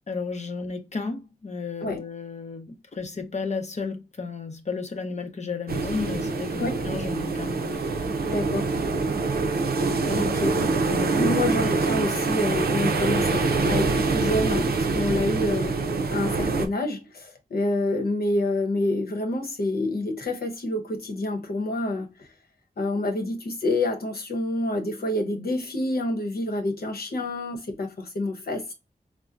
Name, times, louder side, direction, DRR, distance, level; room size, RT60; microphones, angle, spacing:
voice 1, 0.1-8.0 10.0-10.3 10.9-11.3 27.1-27.2, left 4 dB, 45° left, 0.7 m, -33 dB
sound 1, 5.7-16.7, right 3 dB, 85° right, 0.5 m, -25 dB
voice 2, 8.3-8.7 10.1-10.5 11.2-15.8 16.1-22.3 22.8-28.7, left 1 dB, 85° left, 0.8 m, -27 dB
4.3 x 2.1 x 2.4 m
wide cardioid pair, 55°, 16 cm